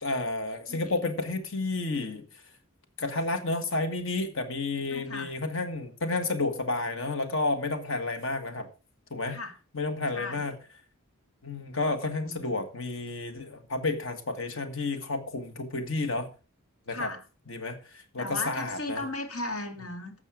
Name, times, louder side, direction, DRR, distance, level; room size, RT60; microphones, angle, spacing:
voice 1, 0.0-2.2 3.0-8.7 9.1-9.4 9.7-10.6 11.4-16.3 16.9-17.1 17.5-19.0, left 3 dB, 60° left, 1.7 m, -31 dB
voice 2, 4.9-5.3 9.3-9.6 10.1-10.5 12.2-12.5 16.9-17.2 18.2-20.2, left 2 dB, 80° left, 2.7 m, -36 dB
12.0 x 8.2 x 5.0 m
head